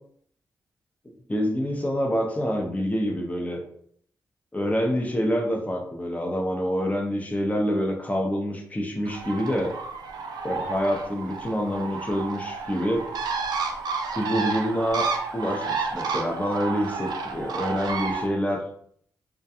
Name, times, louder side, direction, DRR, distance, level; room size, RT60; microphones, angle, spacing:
voice 1, 1.3-3.6 4.5-9.7 10.4-13.0 14.1-15.1 15.3-18.6, equal, 20° left, 2 dB, 0.7 m, -26 dB
Bird, 9.0-18.3, right 4 dB, 70° right, 0.4 m, -31 dB
2.4 x 2.2 x 2.7 m, 0.65 s
supercardioid pair, 45°, 7 cm